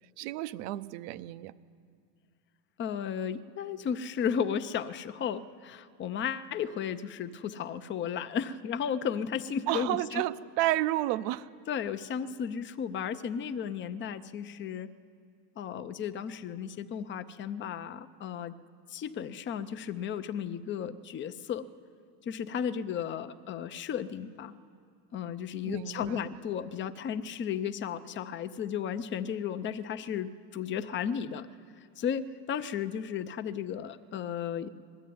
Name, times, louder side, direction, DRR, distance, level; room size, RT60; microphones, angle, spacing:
voice 1, 0.2-1.5 9.7-11.5 25.6-26.3, right 15 dB, 70° right, 13 dB, 0.8 m, -31 dB
voice 2, 2.8-10.2 11.7-14.9 15.6-18.5 18.9-21.7 22.3-24.5 25.1-31.5 32.0-34.7, left 8 dB, 25° left, 11 dB, 0.6 m, -34 dB
20.0 x 14.0 x 9.3 m, 2.2 s
supercardioid pair, 135°, 50 cm